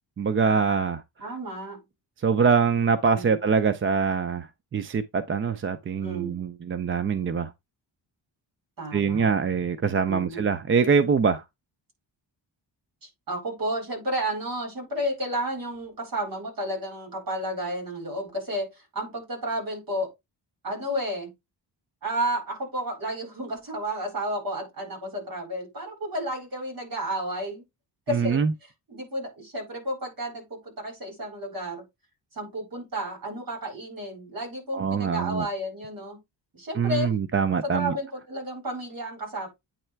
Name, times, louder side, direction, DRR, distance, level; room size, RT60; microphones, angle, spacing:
voice 1, 0.2-1.0 2.2-4.5 4.7-7.5 8.9-11.4 28.1-28.5 34.7-35.5 36.8-37.9, right 5 dB, 30° right, 0.4 m, -24 dB
voice 2, 1.2-1.8 3.1-3.4 6.0-6.4 8.8-9.3 10.1-10.5 13.0-20.1 20.6-21.3 22.0-27.6 28.1-31.8 32.3-36.2 36.5-37.1 37.6-39.5, right 1 dB, 50° right, 4.8 m, -32 dB
9.0 x 3.2 x 4.4 m
wide cardioid pair, 180°, 44 cm